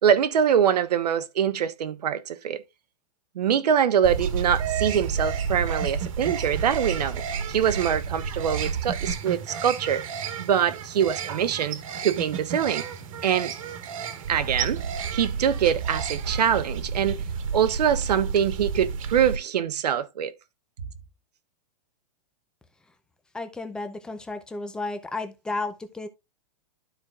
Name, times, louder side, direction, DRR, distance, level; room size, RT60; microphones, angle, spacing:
voice 1, 0.0-2.6 3.3-7.2 7.5-10.0 10.4-12.8 13.2-13.5 14.3-14.8 15.1-17.2 17.5-20.3, right 8 dB, 90° right, 1.0 m, -24 dB
sound 1, 4.0-19.4, right 6 dB, 55° right, 1.4 m, -31 dB
voice 2, 23.3-26.1, left 3 dB, 5° left, 0.5 m, -33 dB
12.5 x 4.6 x 2.4 m
supercardioid pair, 160°, 20 cm